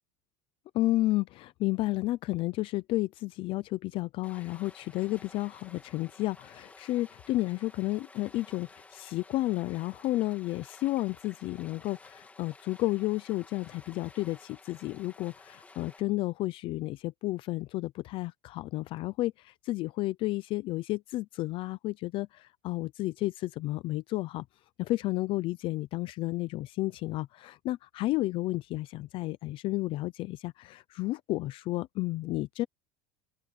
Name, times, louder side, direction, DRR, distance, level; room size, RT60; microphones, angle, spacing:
voice 1, 0.7-24.4 24.8-32.7, left 17 dB, 35° left, 0.5 m, -32 dB
Stream, 4.2-16.0, left 3 dB, 10° left, 2.3 m, -54 dB
open air
cardioid pair, 170°, 16 cm